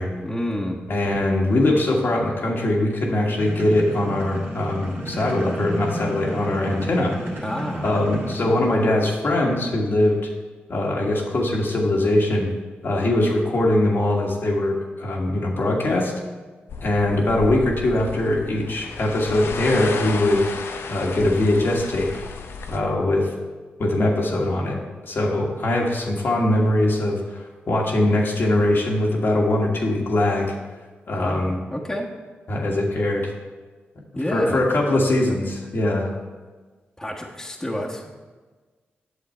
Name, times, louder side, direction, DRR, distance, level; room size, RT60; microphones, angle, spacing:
voice 1, 0.2-0.8 7.4-7.8 31.1-32.1 34.1-34.6 37.0-38.1, equal, 10° left, -2 dB, 1.4 m, -29 dB
voice 2, 0.9-7.2 7.8-10.3 10.7-12.5 12.8-16.1 16.8-20.4 20.9-22.1 22.7-23.3 23.8-30.5 31.1-31.6 32.5-33.3 34.3-36.1, left 1 dB, 60° left, -1 dB, 1.6 m, -21 dB
sound 1, 3.4-9.0, right 1 dB, 65° right, 2.1 m, -32 dB
sound 2, 16.7-22.8, left 5 dB, 75° left, 0.7 m, -33 dB
8.4 x 6.5 x 4.5 m, 1.3 s
cardioid pair, 55°, 4 cm